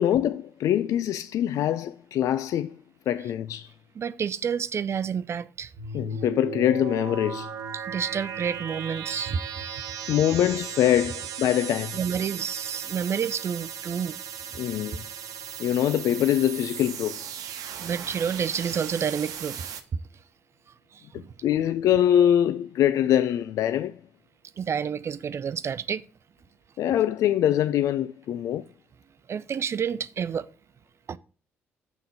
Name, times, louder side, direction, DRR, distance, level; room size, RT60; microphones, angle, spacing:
voice 1, 0.0-2.7 3.1-3.7 5.9-7.5 10.1-12.0 14.6-15.0 15.6-17.2 21.1-24.0 26.8-28.6, left 11 dB, 60° left, 0.4 m, -24 dB
voice 2, 4.0-5.7 7.7-9.4 11.9-14.2 17.8-19.7 20.9-21.0 24.6-26.0 29.3-30.5 31.1-31.2, right 7 dB, 45° right, 0.5 m, -29 dB
sound 1, 5.8-19.8, right 7 dB, 60° right, 1.0 m, -36 dB
7.5 x 5.7 x 5.0 m
hypercardioid pair, 45°, 7 cm